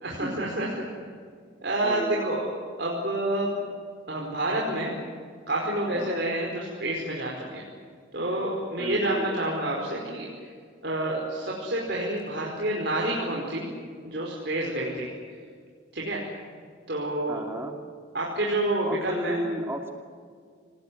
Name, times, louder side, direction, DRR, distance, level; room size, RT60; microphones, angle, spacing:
voice 1, 0.0-0.7 1.6-2.4 2.8-3.6 4.1-5.0 5.5-7.6 8.1-10.5 10.8-13.7 14.0-15.1 15.9-16.2 16.9-17.4 18.1-19.4, right 1 dB, 55° right, -3 dB, 4.9 m, -28 dB
voice 2, 1.8-2.2 5.9-6.3 8.8-9.3 17.3-17.8 18.9-19.9, equal, 10° right, 4 dB, 2.4 m, -33 dB
27.0 x 20.0 x 9.6 m, 2.1 s
head